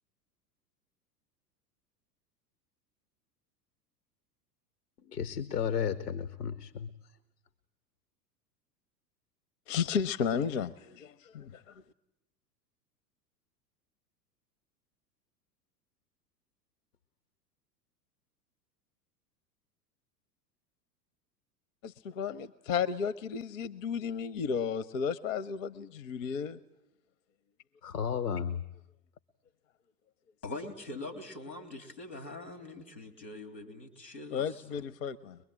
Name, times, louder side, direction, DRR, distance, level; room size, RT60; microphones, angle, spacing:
voice 1, 5.1-6.9 27.8-28.6, left 7 dB, 70° left, 12 dB, 0.9 m, -33 dB
voice 2, 9.7-11.7 21.8-26.6 34.3-35.4, left 7 dB, 50° left, 15 dB, 0.8 m, -33 dB
voice 3, 30.4-34.9, left 2 dB, 90° left, 5 dB, 3.2 m, -43 dB
23.0 x 21.5 x 8.9 m, 0.84 s
figure-of-eight pair, 90°, 48 cm